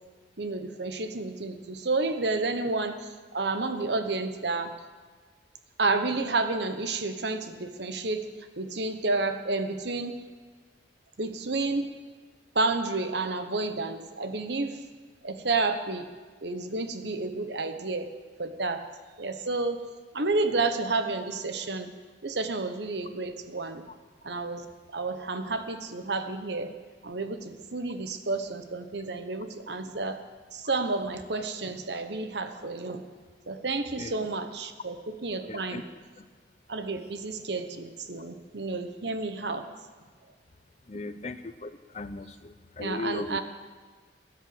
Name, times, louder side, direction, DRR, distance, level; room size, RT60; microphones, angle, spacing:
voice 1, 0.4-4.8 5.8-8.3 8.6-10.2 11.2-11.9 12.5-14.8 15.2-16.1 16.4-18.1 18.4-18.9 19.2-19.8 20.1-21.9 22.2-23.8 24.2-24.7 24.9-26.7 27.0-30.2 30.5-33.0 33.5-35.9 36.7-39.7 40.9-41.1 42.8-43.4, right 3 dB, 65° right, 9 dB, 1.2 m, -30 dB
voice 2, 35.5-35.8 36.2-36.3 40.9-43.4, left 2 dB, 35° left, 12 dB, 0.6 m, -37 dB
16.0 x 10.0 x 7.9 m, 1.4 s
head